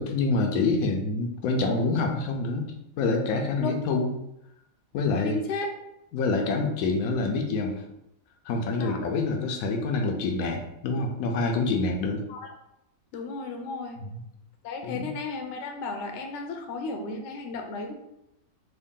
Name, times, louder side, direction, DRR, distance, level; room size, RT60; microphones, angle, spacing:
voice 1, 0.0-4.1 4.9-5.4 6.1-7.8 8.4-12.2 14.0-14.2 14.8-15.1, left 3 dB, 85° left, 3 dB, 1.0 m, -26 dB
voice 2, 5.2-5.7 8.8-9.0 12.3-12.5 13.1-14.0 14.6-17.9, left 3 dB, 65° left, 3 dB, 0.8 m, -34 dB
3.6 x 2.2 x 3.6 m, 0.82 s
omnidirectional pair, 1.4 m